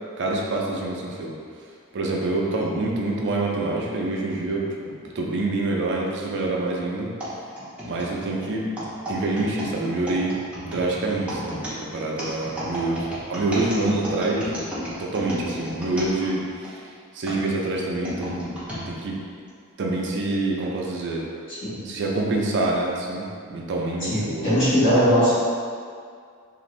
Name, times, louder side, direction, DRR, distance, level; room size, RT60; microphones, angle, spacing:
voice 1, 0.2-1.3 1.9-7.1 7.8-8.6 9.1-10.4 10.6-14.5 15.0-16.8 17.1-18.6 18.9-19.2 19.8-21.2 21.9-24.5, right 2 dB, 55° right, -2 dB, 0.4 m, -26 dB
sound 1, 7.2-16.7 17.3-18.8 19.5-19.6 20.4-20.7, equal, 5° right, 0.6 m, -34 dB
voice 2, 24.0-25.3, equal, 55° left, -11 dB, 1.1 m, -20 dB
2.5 x 2.4 x 3.1 m, 2.2 s
head